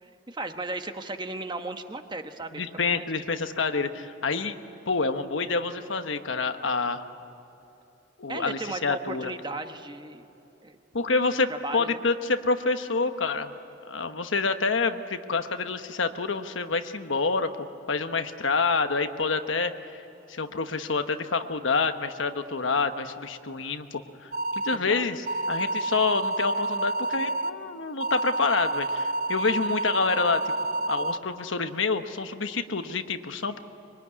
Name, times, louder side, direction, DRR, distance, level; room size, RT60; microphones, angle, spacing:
voice 1, 0.0-3.1 8.3-10.2 10.6-10.8 11.5-12.0 24.7-25.1, right 2 dB, 25° right, 7 dB, 1.2 m, -36 dB
voice 2, 2.5-4.6 4.9-7.0 8.2-9.3 10.9-13.5 13.9-17.5 17.9-19.7 20.3-24.3 24.6-30.5 30.9-33.6, left 4 dB, 80° left, 8 dB, 1.2 m, -27 dB
sound 1, 24.3-24.8 25.3-27.5 28.0-31.2, right 2 dB, 50° right, 1.0 m, -29 dB
24.5 x 23.0 x 9.7 m, 2.9 s
head